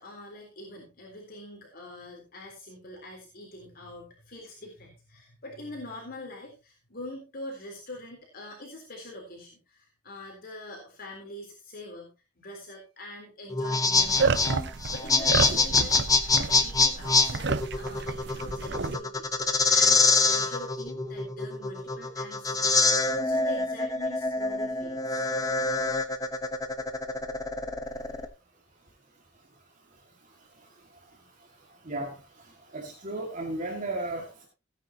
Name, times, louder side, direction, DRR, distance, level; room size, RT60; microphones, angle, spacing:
voice 1, 0.0-16.0 16.3-19.3 19.7-25.2, left 1 dB, 50° left, 0 dB, 3.8 m, -44 dB
sound 1, 13.5-28.3, left 3 dB, 20° left, 1.1 m, -25 dB
sound 2, 14.0-19.0, right 4 dB, 60° right, 0.8 m, -30 dB
voice 2, 28.8-34.5, right 2 dB, 45° right, 1 dB, 2.1 m, -38 dB
16.5 x 9.6 x 2.9 m, 0.27 s
head